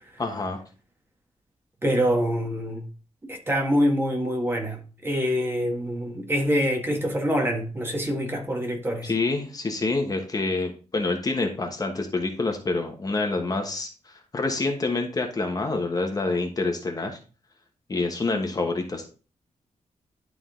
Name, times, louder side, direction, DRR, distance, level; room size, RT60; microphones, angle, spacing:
voice 1, 0.2-0.6 9.0-13.9 14.3-17.1 17.9-19.0, left 3 dB, 30° left, 1.2 m, -27 dB
voice 2, 1.8-2.8 3.3-9.1, equal, 20° right, 1.6 m, -25 dB
11.5 x 3.8 x 3.7 m
wide cardioid pair, 135°, 12 cm